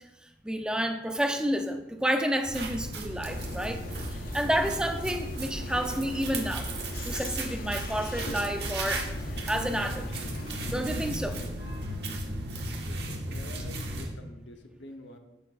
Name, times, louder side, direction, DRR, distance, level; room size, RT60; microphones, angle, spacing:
voice 1, 0.4-3.8 4.1-6.7 7.0-9.0 9.5-10.1 10.7-11.4, equal, 5° right, 5 dB, 0.6 m, -30 dB
sound 1, 2.4-14.1, right 1 dB, 65° right, 1.1 m, -35 dB
sound 2, 3.3-11.5, left 1 dB, 50° left, 0.6 m, -39 dB
voice 2, 12.9-15.2, left 1 dB, 85° left, 5 dB, 0.9 m, -47 dB
8.7 x 8.5 x 2.5 m, 0.97 s
head